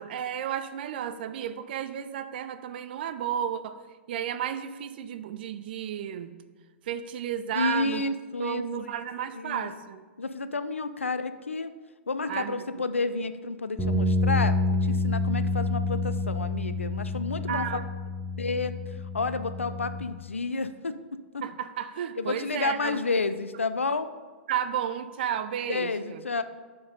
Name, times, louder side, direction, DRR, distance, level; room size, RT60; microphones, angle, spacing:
voice 1, 0.0-3.8 4.1-6.3 6.8-8.0 8.4-10.0 12.3-12.5 17.5-17.9 21.4-23.0 24.5-26.2, right 9 dB, 50° right, 12 dB, 0.4 m, -32 dB
voice 2, 7.5-8.6 9.3-9.7 10.2-11.8 12.1-17.7 18.4-18.7 19.1-21.4 22.2-24.1 25.7-26.4, left 3 dB, 80° left, 12 dB, 0.4 m, -30 dB
sound 1, 13.8-20.0, left 2 dB, ahead, 1.2 m, -28 dB
5.3 x 4.6 x 5.2 m, 1.4 s
figure-of-eight pair, 105°, 7 cm